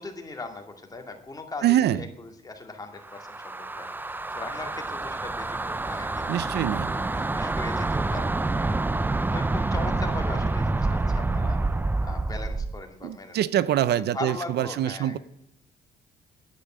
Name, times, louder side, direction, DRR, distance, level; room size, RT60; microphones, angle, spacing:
voice 1, 0.0-6.5 6.8-8.3 8.5-11.6 12.0-13.4 13.9-15.2, left 3 dB, 20° left, 4 dB, 2.2 m, -39 dB
voice 2, 1.6-2.0 6.3-6.9 13.0-15.2, right 12 dB, 65° right, 17 dB, 0.6 m, -24 dB
sound 1, 3.0-12.8, right 2 dB, 10° right, 0.4 m, -27 dB
10.0 x 8.4 x 8.7 m, 0.80 s
cardioid pair, 95°, 18 cm